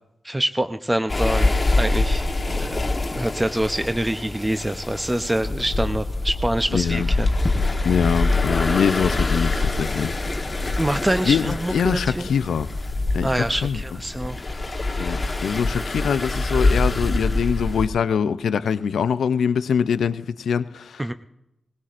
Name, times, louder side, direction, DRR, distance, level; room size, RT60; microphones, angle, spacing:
voice 1, 0.2-2.3 2.6-7.3 10.8-12.3 13.2-14.4 21.0-21.1, right 1 dB, 15° right, 0.6 m, -25 dB
sound 1, 1.1-17.9, left 2 dB, 35° left, 1.2 m, -25 dB
voice 2, 6.7-7.1 7.8-10.1 11.2-12.7 13.1-13.3 13.6-13.8 15.0-21.0, left 7 dB, 80° left, 0.5 m, -23 dB
Wind instrument woodwind instrument, 8.6-12.6, right 4 dB, 55° right, 2.9 m, -48 dB
20.5 x 17.0 x 2.5 m
cardioid pair, 50°, 0 cm